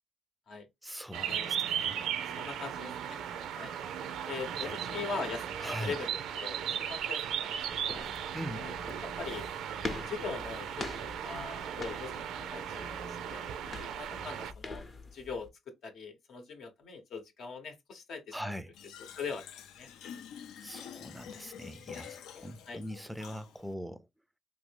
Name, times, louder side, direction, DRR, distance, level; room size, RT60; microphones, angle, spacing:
voice 1, 0.8-2.0 4.6-4.7 5.6-5.9 8.3-8.6 18.3-18.7 20.6-24.1, equal, ahead, 0.4 m, -41 dB
sound 1, 1.1-14.5, right 9 dB, 80° right, 0.4 m, -37 dB
voice 2, 2.3-3.2 3.5-3.7 4.3-8.0 8.6-8.8 9.0-9.5 10.1-13.4 13.9-14.8 15.1-18.4 19.2-19.4 19.8-19.9 22.7-22.8, left 5 dB, 70° left, 0.8 m, -41 dB
sound 2, 7.7-15.5, left 3 dB, 40° left, 0.7 m, -45 dB
Fill (with liquid), 18.7-23.7, left 8 dB, 85° left, 0.4 m, -48 dB
3.2 x 2.6 x 3.2 m
cardioid pair, 90°, 0 cm